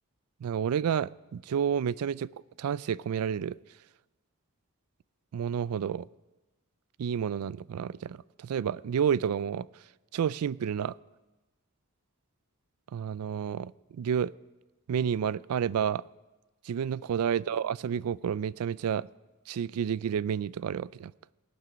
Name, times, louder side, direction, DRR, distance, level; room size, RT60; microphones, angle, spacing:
voice 1, 0.4-2.3 2.6-3.6 5.3-6.1 7.0-9.7 10.1-10.9 12.9-14.3 14.9-16.0 16.6-19.1 19.5-21.1, right 8 dB, 80° right, 21 dB, 0.3 m, -30 dB
17.5 x 9.5 x 5.1 m, 1.1 s
head